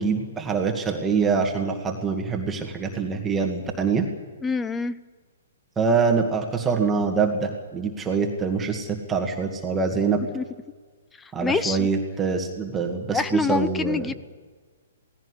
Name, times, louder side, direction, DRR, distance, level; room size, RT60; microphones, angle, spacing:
voice 1, 0.0-4.1 5.8-10.2 11.3-14.1, right 5 dB, 15° right, 2 dB, 2.1 m, -24 dB
voice 2, 4.4-5.0 10.3-10.4 11.2-11.9 13.1-14.1, left 4 dB, 10° left, 15 dB, 0.7 m, -26 dB
17.5 x 16.5 x 9.9 m, 1.5 s
hypercardioid pair, 145°, 0 cm